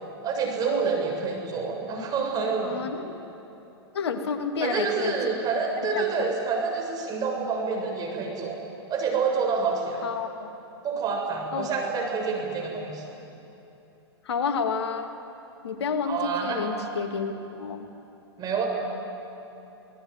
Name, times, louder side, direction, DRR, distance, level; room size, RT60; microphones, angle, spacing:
voice 1, 0.2-2.8 4.6-8.6 8.9-10.0 10.8-13.0 16.0-16.7 18.4-18.7, right 5 dB, 25° right, 1 dB, 6.8 m, -28 dB
voice 2, 2.6-3.2 3.9-5.3 5.9-6.3 10.0-10.5 11.5-11.7 14.2-15.1 15.6-17.9, left 5 dB, 70° left, 6 dB, 2.2 m, -30 dB
27.5 x 18.0 x 9.5 m, 2.9 s
hypercardioid pair, 115°, 14 cm